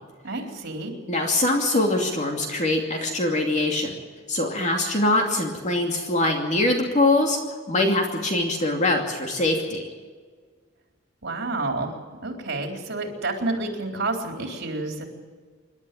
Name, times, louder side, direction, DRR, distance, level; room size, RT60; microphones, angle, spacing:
voice 1, 0.2-1.0 11.2-11.9 12.2-15.1, right 2 dB, 55° right, 3 dB, 3.9 m, -29 dB
voice 2, 1.1-4.0 4.3-7.4 7.7-9.9, left 2 dB, 35° left, 2 dB, 2.7 m, -23 dB
27.0 x 12.0 x 9.2 m, 1.5 s
head